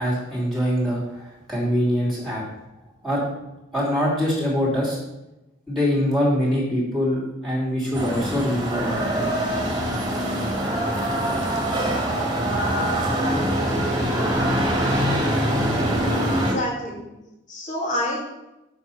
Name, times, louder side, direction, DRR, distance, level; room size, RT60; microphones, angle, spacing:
voice 1, 0.0-2.4 3.0-3.2 3.7-5.0 5.7-9.3, equal, ahead, -7 dB, 2.8 m, -23 dB
sound 1, 7.9-16.5, right 1 dB, 25° right, 1.9 m, -23 dB
voice 2, 15.8-17.1 17.5-18.2, left 1 dB, 40° left, -4 dB, 2.5 m, -29 dB
7.8 x 5.7 x 5.7 m, 0.96 s
head